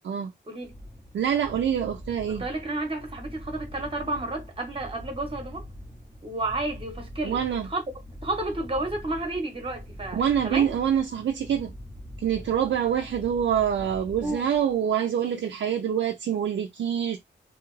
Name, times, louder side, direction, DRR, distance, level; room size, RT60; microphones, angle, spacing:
voice 1, 0.5-0.8 2.3-5.7 6.2-7.8 8.2-10.7 14.2-14.5, right 2 dB, 30° right, 1.0 m, -31 dB
sound 1, 0.6-14.9, left 1 dB, 10° left, 0.8 m, -43 dB
voice 2, 1.1-2.4 7.2-7.7 10.1-11.7 12.2-17.2, right 9 dB, 70° right, 0.4 m, -25 dB
2.7 x 2.3 x 3.1 m
wide cardioid pair, 175°, 19 cm